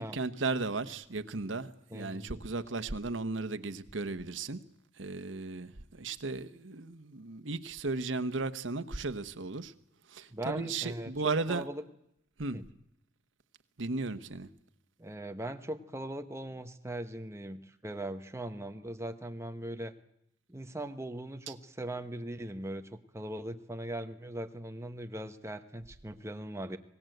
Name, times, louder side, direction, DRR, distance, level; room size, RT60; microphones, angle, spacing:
voice 1, 0.0-4.6 5.0-9.7 10.1-11.6 12.4-12.6 13.8-14.5, right 3 dB, 85° right, 1.2 m, -35 dB
voice 2, 1.9-2.5 10.3-11.8 12.5-12.6 15.0-19.9 20.5-26.8, right 1 dB, 15° right, 1.2 m, -40 dB
26.0 x 18.5 x 7.9 m
head